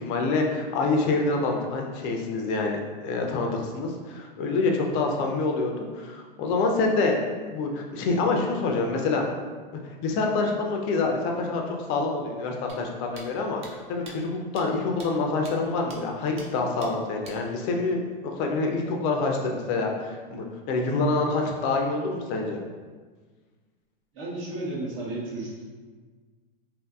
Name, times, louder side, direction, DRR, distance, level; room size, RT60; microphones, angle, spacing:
voice 1, 0.0-7.2 7.5-9.2 9.8-22.6, left 3 dB, 40° left, 1 dB, 0.5 m, -26 dB
sound 1, 12.7-12.8 13.2-13.3 13.6-13.7 14.1-14.2 14.6-14.7 15.0-15.1 15.5-15.6 15.9-16.0 16.4-16.5 16.8-16.9 17.2-17.4, right 3 dB, 20° right, 0.4 m, -44 dB
voice 2, 24.1-25.7, right 2 dB, 40° right, -6 dB, 0.8 m, -33 dB
2.7 x 2.6 x 2.3 m, 1.4 s
hypercardioid pair, 110°, 29 cm